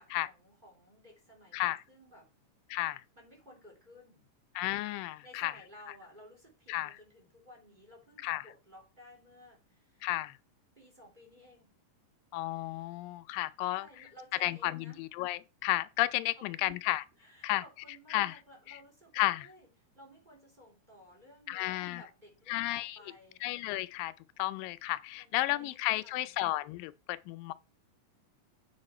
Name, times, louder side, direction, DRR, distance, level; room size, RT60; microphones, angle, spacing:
voice 1, 0.0-2.3 3.1-4.3 5.2-10.1 10.7-11.8 13.6-15.0 16.4-16.8 17.2-19.7 19.9-23.4 25.1-26.2, equal, 15° right, 3.1 m, -56 dB
voice 2, 2.7-3.0 4.6-5.5 6.7-6.9 8.2-8.4 10.0-10.4 12.3-13.9 14.4-17.0 17.4-17.6 18.1-18.4 18.7-18.8 19.2-19.5 21.5-22.0 22.5-23.0 23.4-27.5, left 17 dB, 90° left, 2.3 m, -33 dB
8.8 x 5.0 x 4.3 m
omnidirectional pair, 3.9 m